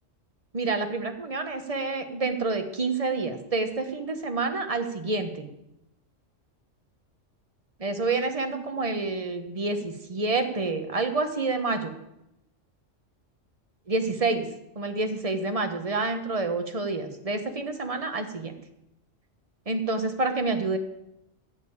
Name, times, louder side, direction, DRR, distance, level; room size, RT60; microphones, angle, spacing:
voice 1, 0.5-5.5 7.8-11.9 13.9-14.5 14.7-18.6 19.7-20.8, right 3 dB, 30° right, 7 dB, 1.2 m, -28 dB
11.0 x 6.9 x 8.7 m, 0.86 s
omnidirectional pair, 1.3 m